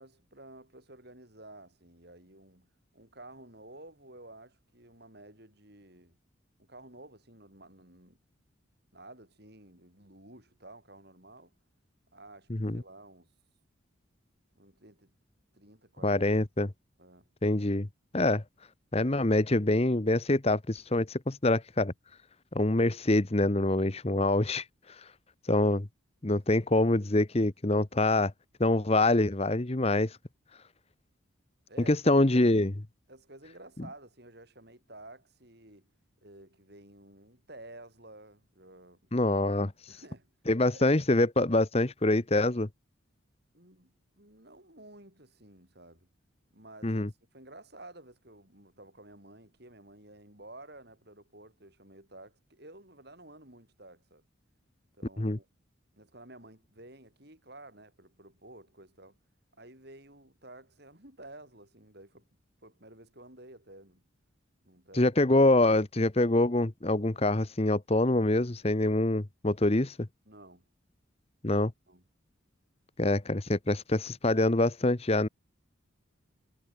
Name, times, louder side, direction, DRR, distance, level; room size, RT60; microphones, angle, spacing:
voice 1, 0.0-2.7 2.9-6.2 6.6-8.2 8.9-11.6 12.1-13.3 14.5-15.2 15.5-16.3 17.0-17.3 31.7-32.0 32.3-32.5 33.1-35.9 36.2-39.1 39.9-40.3 40.7-40.9 43.5-46.1 46.5-54.2 55.0-55.5 55.9-59.2 59.6-62.3 62.6-64.0 64.6-65.1 70.3-70.7 71.4-71.6 71.9-72.0, right 1 dB, 50° right, 7.7 m, -52 dB
voice 2, 12.5-12.8 16.0-16.7 17.4-17.9 18.1-18.4 18.9-21.9 22.5-24.6 25.5-25.9 26.2-28.3 28.6-30.2 31.9-32.7 39.1-39.7 40.5-42.7 46.8-47.1 55.2-55.4 64.9-70.0 71.4-71.7 73.0-75.3, left 2 dB, 30° left, 1.0 m, -25 dB
head